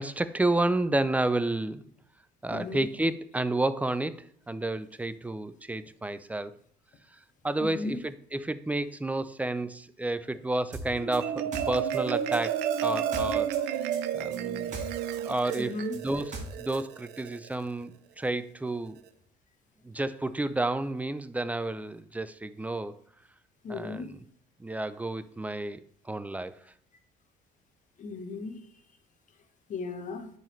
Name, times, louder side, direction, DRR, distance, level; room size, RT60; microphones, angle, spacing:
voice 1, 0.0-1.8 2.4-6.5 7.4-13.8 14.1-14.8 15.2-19.0 19.8-23.0 23.7-24.2 24.6-26.6, right 2 dB, 10° right, 0.3 m, -31 dB
voice 2, 2.5-2.9 7.6-8.0 15.6-16.0 23.6-24.1 28.0-28.7 29.7-30.3, left 3 dB, 50° left, 1.1 m, -36 dB
sound 1, 10.7-13.6 13.9-16.8, right 2 dB, 45° right, 1.4 m, -40 dB
Marimba xylophone, 10.9-17.5, right 9 dB, 80° right, 0.5 m, -31 dB
10.5 x 4.0 x 3.1 m
cardioid pair, 110°, 17 cm